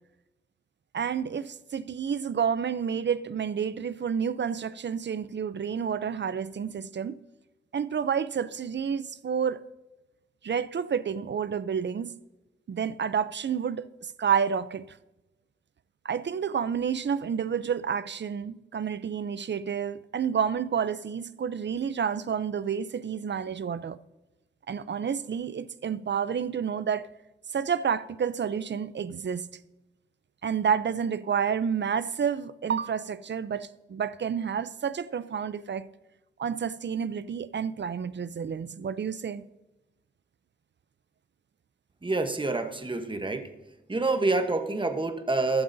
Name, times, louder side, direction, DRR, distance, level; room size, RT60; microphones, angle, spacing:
voice 1, 0.9-7.2 7.7-9.7 10.4-12.2 12.7-14.9 16.0-24.0 24.7-27.1 27.5-29.5 30.4-35.9 36.4-39.5, right 7 dB, 60° right, 0.5 m, -29 dB
voice 2, 42.0-43.5 43.9-45.6, right 3 dB, 25° right, 1.0 m, -27 dB
15.0 x 12.0 x 2.6 m
wide cardioid pair, 110°, 21 cm